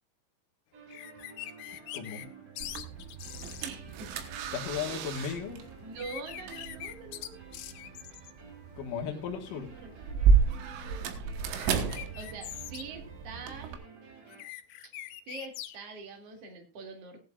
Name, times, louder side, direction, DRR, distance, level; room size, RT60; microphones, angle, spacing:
sound 1, 0.7-14.4, right 5 dB, 60° right, 4.7 m, -52 dB
sound 2, 0.9-2.3 2.6-3.7 6.0-8.3 11.5-12.8 14.3-15.8, left 12 dB, 85° left, 2.3 m, -43 dB
voice 1, 1.9-2.2 4.5-5.6 8.8-9.7, left 7 dB, 60° left, 0 dB, 2.4 m, -35 dB
sound 3, 2.6-13.7, right 5 dB, 80° right, 3.7 m, -32 dB
voice 2, 3.6-4.1 4.9-5.0 5.8-7.3 9.0-9.5 9.8-10.2 11.7-13.8 15.3-17.2, right 4 dB, 40° right, 2 dB, 2.6 m, -44 dB
18.0 x 11.0 x 2.5 m, 0.30 s
omnidirectional pair, 5.7 m